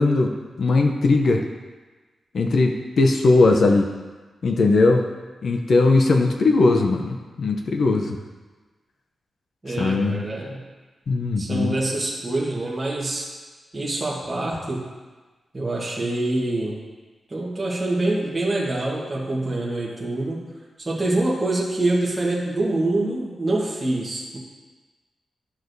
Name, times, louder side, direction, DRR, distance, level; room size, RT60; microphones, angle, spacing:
voice 1, 0.0-1.4 2.3-3.9 4.4-5.0 5.4-8.2 9.7-10.2 11.1-11.7, left 3 dB, 50° left, 3 dB, 0.6 m, -19 dB
voice 2, 9.6-10.6 11.4-13.3 13.7-14.9 15.5-16.8 17.3-20.4 20.8-24.4, right 2 dB, 20° right, -5 dB, 1.2 m, -25 dB
11.5 x 6.2 x 2.6 m, 1.3 s
wide cardioid pair, 175°, 0 cm